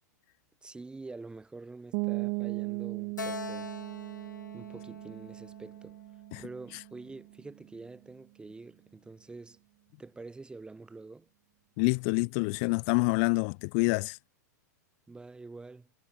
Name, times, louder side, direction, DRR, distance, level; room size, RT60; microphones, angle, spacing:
voice 1, 0.6-3.7 4.5-6.0 6.4-9.6 10.0-11.3 15.1-15.9, right 3 dB, 10° right, 6.2 m, -46 dB
sound 1, 1.9-7.5, right 38 dB, 45° right, 3.9 m, -37 dB
Keyboard (musical), 3.2-6.6, left 5 dB, 85° left, 2.1 m, -44 dB
voice 2, 11.8-14.2, left 36 dB, 45° left, 1.3 m, -27 dB
hypercardioid pair, 105°, 10 cm